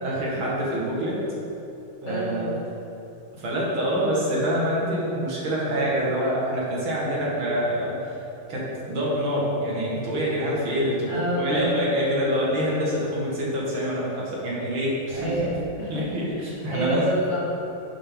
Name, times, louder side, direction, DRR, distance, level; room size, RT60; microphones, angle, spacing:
voice 1, 0.0-1.2 2.0-2.5 3.4-8.2 8.5-15.3 15.9-17.2, equal, 80° right, -5 dB, 2.7 m, -26 dB
voice 2, 2.1-2.5 4.8-5.0 11.1-11.9 15.1-16.2 16.4-17.4, right 1 dB, 35° left, -7 dB, 2.4 m, -28 dB
11.0 x 7.0 x 3.9 m, 2.9 s
omnidirectional pair, 2.2 m